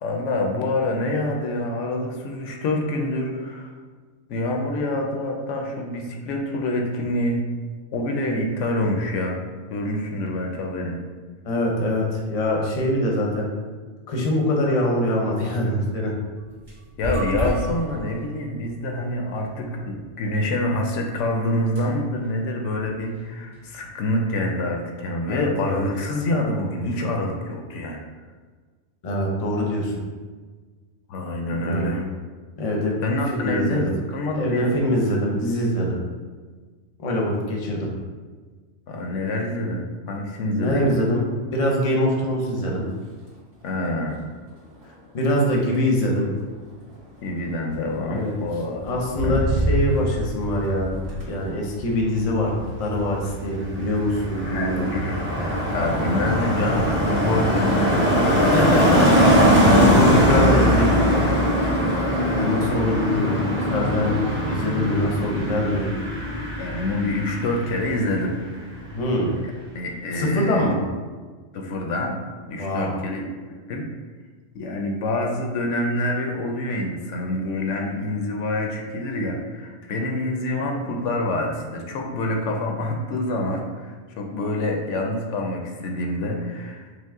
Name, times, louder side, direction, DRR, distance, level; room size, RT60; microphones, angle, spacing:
voice 1, 0.0-3.7 4.3-7.5 7.9-9.4 9.7-11.0 17.0-28.0 31.1-32.0 33.0-34.7 38.9-41.0 43.6-44.2 47.2-48.8 49.2-49.4 54.4-58.6 66.6-68.3 69.4-69.5 69.7-70.7 71.5-72.2 72.5-73.2 73.5-73.9 74.5-86.9, left 1 dB, 80° left, 2 dB, 0.9 m, -26 dB
voice 2, 11.4-13.5 14.1-16.1 25.3-25.8 29.0-29.9 31.5-32.0 32.6-33.0 33.3-34.0 34.3-36.0 37.0-37.9 40.5-42.8 45.1-46.3 48.0-48.3 48.8-50.9 51.3-54.9 58.3-61.2 62.3-64.2 64.5-65.9 68.9-69.3 70.1-70.8 72.6-73.0, left 1 dB, 40° left, -2 dB, 0.7 m, -24 dB
sound 1, 16.4-23.9, right 2 dB, 30° right, 1.2 m, -35 dB
Motor vehicle (road), 41.9-42.3 42.6-57.1 57.4-57.9, equal, 55° right, 1.5 m, -32 dB
Car passing by, 53.4-68.2 68.4-68.7, equal, 10° right, 0.7 m, -21 dB
5.2 x 2.0 x 3.5 m, 1.4 s
omnidirectional pair, 1.3 m